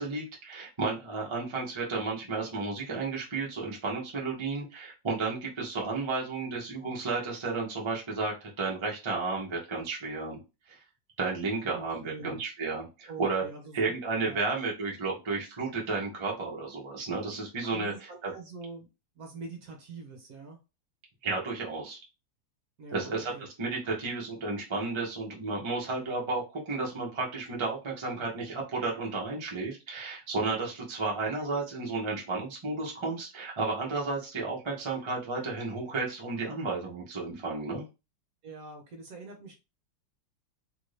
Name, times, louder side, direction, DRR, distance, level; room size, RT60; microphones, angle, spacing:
voice 1, 0.0-10.4 10.7-10.8 11.2-13.5 13.7-18.3 21.2-22.0 22.9-37.8, right 3 dB, 25° right, -3 dB, 0.6 m, -32 dB
voice 2, 11.7-12.4 13.1-13.8 14.2-14.5 17.7-18.9 19.2-20.6 22.8-23.5 38.4-39.5, right 3 dB, 60° right, 3 dB, 1.1 m, -44 dB
3.1 x 2.6 x 3.2 m, 0.28 s
omnidirectional pair, 2.0 m